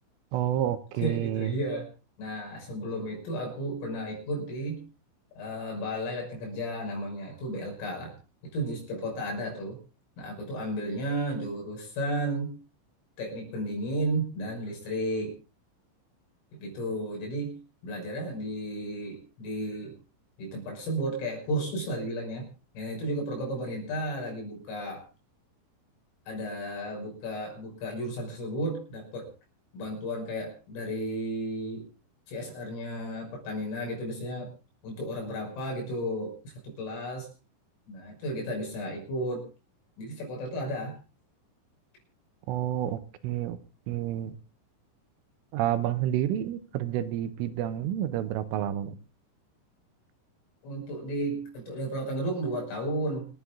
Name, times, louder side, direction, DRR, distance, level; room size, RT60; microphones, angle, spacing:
voice 1, 0.3-1.5 42.5-43.6 43.9-44.4 45.5-49.0, right 12 dB, 85° right, 12 dB, 3.6 m, -29 dB
voice 2, 1.0-1.9 2.2-4.9 5.4-8.1 8.5-9.8 10.2-12.6 13.2-15.3 16.6-20.0 20.4-22.5 22.8-25.0 26.3-29.3 29.7-31.9 32.3-34.5 34.8-37.3 37.9-39.5 40.0-41.0 50.6-53.3, right 1 dB, 80° left, 0 dB, 8.7 m, -33 dB
27.0 x 9.7 x 3.9 m, 0.33 s
omnidirectional pair, 5.7 m